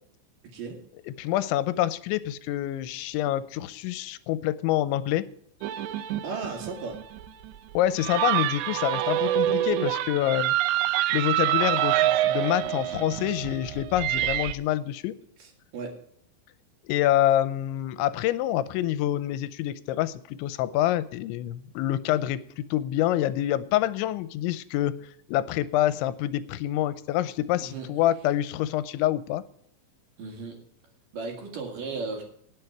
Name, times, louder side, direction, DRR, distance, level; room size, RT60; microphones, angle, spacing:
voice 1, 1.1-5.3 7.7-10.5 11.1-15.2 16.8-25.0 25.3-29.4, left 13 dB, 90° left, 15 dB, 3.0 m, -26 dB
sound 1, 5.6-14.6, right 14 dB, 80° right, 2.9 m, -26 dB
voice 2, 6.2-7.0 15.4-16.0 27.6-27.9 30.2-30.5 31.1-32.2, right 4 dB, 55° right, 2 dB, 3.0 m, -35 dB
19.0 x 7.0 x 4.7 m, 0.65 s
omnidirectional pair, 5.2 m